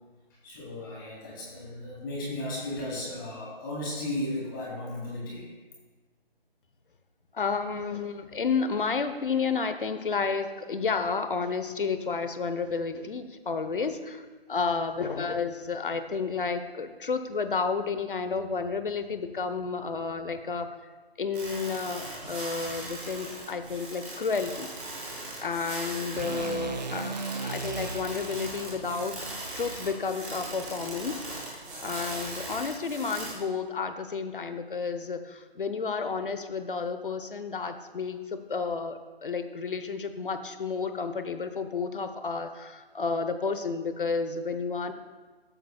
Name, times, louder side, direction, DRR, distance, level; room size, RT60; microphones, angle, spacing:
voice 1, 0.4-5.5, left 1 dB, 20° left, -6 dB, 3.3 m, -35 dB
voice 2, 7.3-14.2 14.5-20.7 21.2-24.7 25.4-31.2 31.8-44.9, left 5 dB, 55° left, 9 dB, 1.0 m, -31 dB
sound 1, 21.3-33.3, right 2 dB, 10° right, 1.3 m, -39 dB
sound 2, 26.1-30.3, right 4 dB, 45° right, 0.8 m, -38 dB
19.0 x 9.0 x 2.3 m, 1.3 s
figure-of-eight pair, 160°, 31 cm